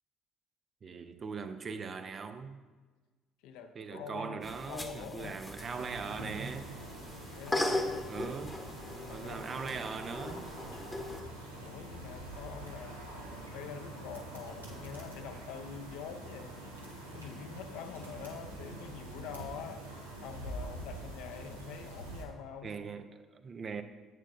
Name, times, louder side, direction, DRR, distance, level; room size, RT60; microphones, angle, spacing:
voice 1, 0.8-2.6 3.7-6.8 8.1-8.6 9.1-10.5 22.6-23.8, right 5 dB, 40° right, 9 dB, 0.6 m, -40 dB
voice 2, 3.4-5.5 7.3-8.3 9.1-9.8 11.6-13.3 13.5-16.6 17.1-19.8 20.2-22.8, left 7 dB, 65° left, 6 dB, 0.6 m, -45 dB
sound 1, 4.4-11.2, left 1 dB, 15° left, 1.0 m, -39 dB
sound 2, 5.6-22.2, right 1 dB, 90° right, 1.0 m, -45 dB
10.5 x 8.2 x 2.6 m, 1.4 s
figure-of-eight pair, 50°, 0 cm